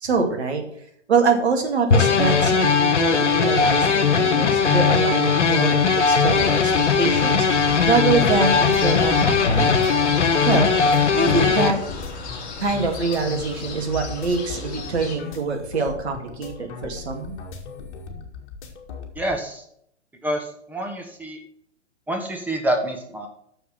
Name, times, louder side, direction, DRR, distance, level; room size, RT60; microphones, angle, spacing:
voice 1, 0.0-0.6 1.1-6.7 7.0-7.5 7.8-10.0 10.5-10.8 11.2-11.8 12.6-17.3, right 4 dB, 65° right, 3 dB, 2.3 m, -24 dB
sound 1, 1.9-11.7, left 5 dB, 75° left, 1.3 m, -19 dB
sound 2, 6.3-15.2, left 4 dB, 25° left, 2.6 m, -34 dB
sound 3, 8.6-19.4, left 5 dB, 45° left, 1.9 m, -38 dB
voice 2, 19.1-19.6 20.2-21.4 22.1-23.3, right 1 dB, 5° right, 3 dB, 1.4 m, -27 dB
6.9 x 6.1 x 7.6 m, 0.69 s
figure-of-eight pair, 120°, 35 cm